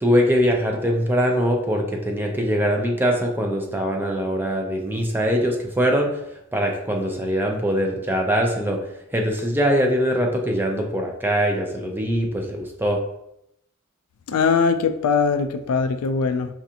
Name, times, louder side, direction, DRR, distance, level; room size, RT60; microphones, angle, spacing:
voice 1, 0.0-6.2 6.5-8.8 9.1-13.0, equal, 10° right, 1 dB, 0.5 m, -22 dB
voice 2, 14.3-16.5, left 5 dB, 85° left, 9 dB, 0.4 m, -21 dB
4.7 x 2.5 x 2.8 m, 0.81 s
head